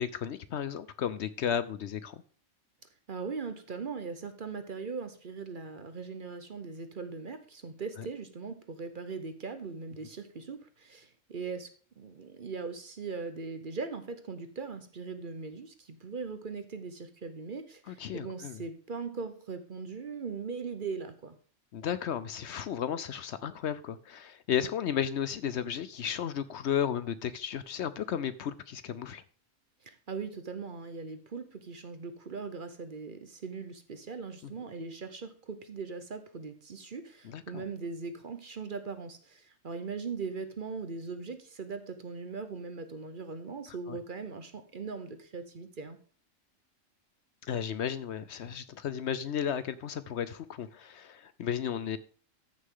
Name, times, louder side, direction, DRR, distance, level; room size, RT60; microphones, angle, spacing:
voice 1, 0.0-2.2 17.9-18.6 21.7-29.2 34.4-34.5 37.2-37.6 43.9-44.0 47.4-52.0, left 8 dB, 65° left, 0.8 m, -34 dB
voice 2, 3.1-11.7 12.0-21.4 29.8-46.0, right 4 dB, 45° right, 0.9 m, -40 dB
14.0 x 6.4 x 3.7 m
omnidirectional pair, 1.3 m